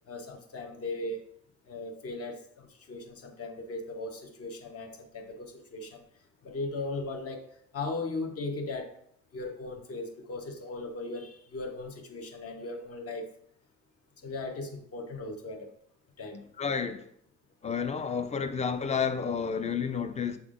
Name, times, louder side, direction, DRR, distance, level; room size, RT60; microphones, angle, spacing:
voice 1, 0.1-1.2 1.7-6.0 6.4-7.4 7.7-8.9 9.3-13.3 14.2-15.7 16.2-16.5, left 2 dB, 50° left, 0.9 m, -38 dB
voice 2, 16.6-17.0 17.6-20.4, left 6 dB, 25° left, 0.4 m, -30 dB
6.1 x 3.5 x 2.4 m
cardioid pair, 90°, 30 cm